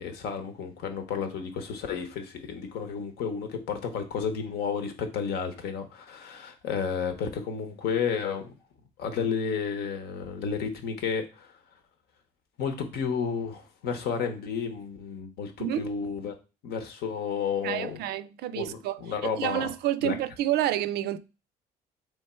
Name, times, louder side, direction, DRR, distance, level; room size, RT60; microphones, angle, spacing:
voice 1, 0.0-8.5 9.0-11.5 12.6-16.3 16.6-18.0 18.5-19.7 20.0-20.2, left 6 dB, 75° left, 1.0 m, -32 dB
voice 2, 17.6-21.2, right 12 dB, 70° right, 0.4 m, -29 dB
3.6 x 3.2 x 4.3 m
cardioid pair, 110°, 17 cm